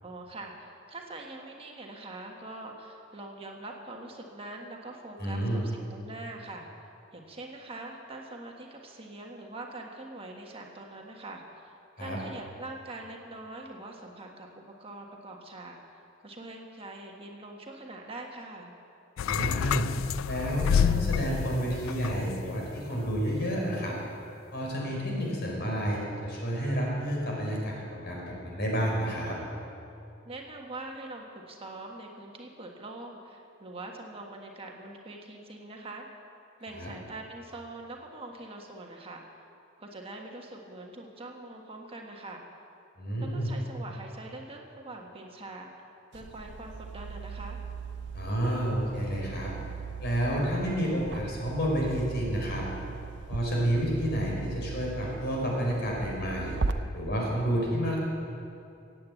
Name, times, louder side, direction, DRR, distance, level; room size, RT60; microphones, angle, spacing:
voice 1, 0.0-6.7 7.1-18.7 30.2-36.1 36.6-39.2 39.8-42.4 43.2-45.7 46.1-47.6, right 2 dB, 30° right, 1 dB, 1.4 m, -43 dB
voice 2, 5.2-5.6 12.0-12.2 19.2-19.9 20.3-24.0 24.5-29.4 36.8-36.9 43.0-43.5 48.1-49.5 50.0-52.6 53.3-56.6 56.9-58.0, equal, 55° left, -2 dB, 4.5 m, -30 dB
sound 1, 19.2-22.6 23.0-23.2, left 7 dB, 75° left, 0.3 m, -28 dB
sound 2, 46.1-56.7, right 4 dB, 60° right, 0.7 m, -38 dB
16.0 x 8.8 x 8.3 m, 2.7 s
head